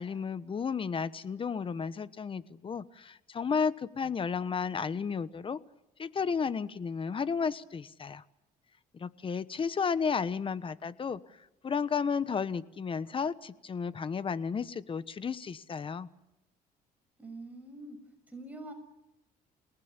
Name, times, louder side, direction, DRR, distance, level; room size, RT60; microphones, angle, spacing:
voice 1, 0.0-5.6 6.0-8.2 8.9-11.2 11.6-16.1, left 6 dB, 30° left, 15 dB, 1.2 m, -33 dB
voice 2, 17.2-18.0 18.3-18.7, right 2 dB, 10° right, 4 dB, 6.6 m, -44 dB
29.0 x 19.0 x 9.9 m, 0.92 s
cardioid pair, 110°, 17 cm